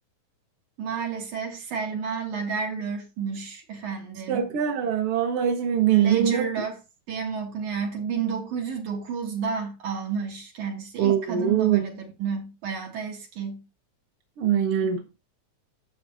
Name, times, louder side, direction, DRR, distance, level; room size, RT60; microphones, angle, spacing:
voice 1, 0.8-4.5 5.9-6.8 7.1-13.7, right 6 dB, 75° right, 3.8 m, -31 dB
voice 2, 4.3-6.4 11.0-11.8 14.4-15.0, right 9 dB, 55° right, 1.9 m, -22 dB
12.0 x 7.7 x 2.8 m
omnidirectional pair, 3.5 m